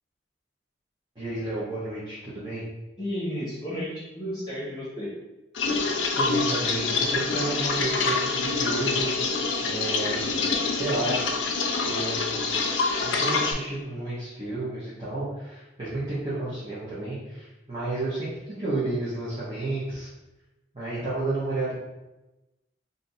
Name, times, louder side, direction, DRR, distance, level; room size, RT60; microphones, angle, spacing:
voice 1, 1.2-2.6 6.1-9.2 9.6-10.2 10.7-11.1 11.8-12.6 13.0-20.1 20.7-21.7, right 2 dB, 25° right, -10 dB, 0.8 m, -31 dB
voice 2, 3.0-5.1, equal, 25° left, -8 dB, 0.9 m, -32 dB
sound 1, 5.5-13.5, left 4 dB, 80° left, 0.5 m, -26 dB
2.6 x 2.6 x 4.0 m, 1.0 s
head